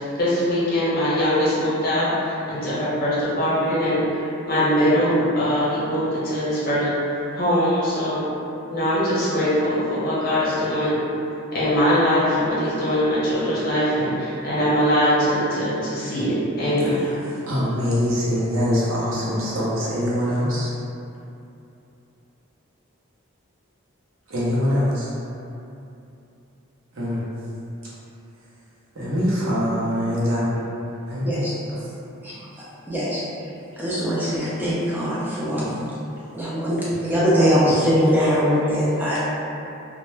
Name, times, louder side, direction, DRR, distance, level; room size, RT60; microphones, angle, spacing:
voice 1, 0.1-8.3 8.7-11.0 11.5-17.0, equal, 45° left, -9 dB, 0.7 m, -22 dB
voice 2, 17.5-20.7 24.3-25.1 26.9-27.2 28.9-30.5 31.1-31.5, equal, 70° right, -8 dB, 0.7 m, -23 dB
voice 3, 32.9-33.2 33.8-35.8 36.3-39.2, equal, 10° right, -10 dB, 0.4 m, -21 dB
2.1 x 2.1 x 3.1 m, 2.8 s
head